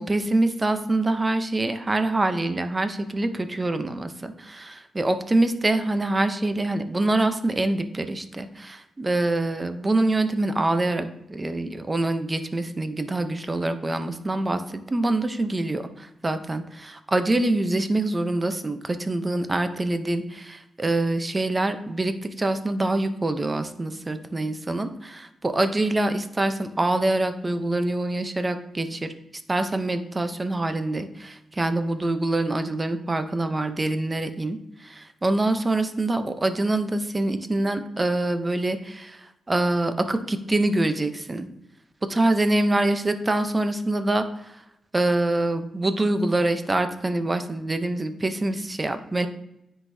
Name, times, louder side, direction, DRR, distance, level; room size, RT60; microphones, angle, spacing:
voice 1, 0.0-29.1 29.5-41.5 42.1-44.6 44.9-49.3, right 2 dB, 25° right, 9 dB, 0.6 m, -25 dB
9.7 x 3.8 x 2.7 m, 0.83 s
cardioid pair, 75°, 0 cm